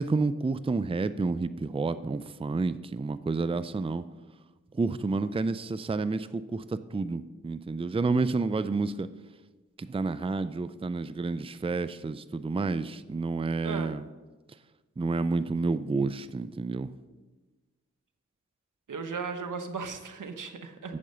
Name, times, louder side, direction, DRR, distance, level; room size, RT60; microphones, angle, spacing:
voice 1, 0.0-4.0 4.7-9.1 9.8-14.1 15.0-16.9 20.9-21.0, right 3 dB, 20° right, 13 dB, 0.5 m, -30 dB
voice 2, 18.9-20.9, right 5 dB, 80° right, 7 dB, 1.1 m, -36 dB
8.6 x 7.5 x 6.8 m, 1.2 s
cardioid pair, 50°, 31 cm